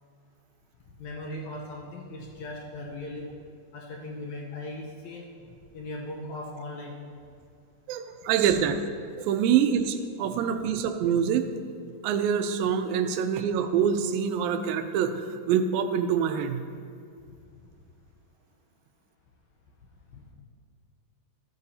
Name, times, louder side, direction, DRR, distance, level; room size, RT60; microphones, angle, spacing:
voice 1, 1.0-3.3 3.7-5.3 5.7-7.0 20.1-20.2, left 1 dB, 70° left, -1 dB, 1.8 m, -38 dB
voice 2, 7.9-8.8 9.2-11.6 12.0-16.6, right 8 dB, 85° right, 8 dB, 2.3 m, -25 dB
13.0 x 8.7 x 2.8 m, 2.4 s
omnidirectional pair, 4.1 m